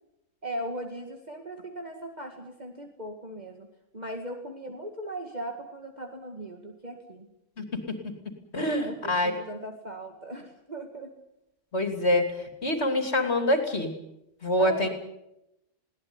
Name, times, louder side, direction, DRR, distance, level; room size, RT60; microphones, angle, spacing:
voice 1, 0.4-3.7 3.9-7.3 8.6-11.1 14.6-14.9, right 1 dB, 30° right, 3 dB, 2.3 m, -38 dB
voice 2, 7.6-8.0 8.5-9.3 11.7-13.9 14.4-14.9, left 1 dB, 55° left, 6 dB, 3.2 m, -26 dB
21.0 x 18.0 x 9.7 m, 0.86 s
omnidirectional pair, 1.4 m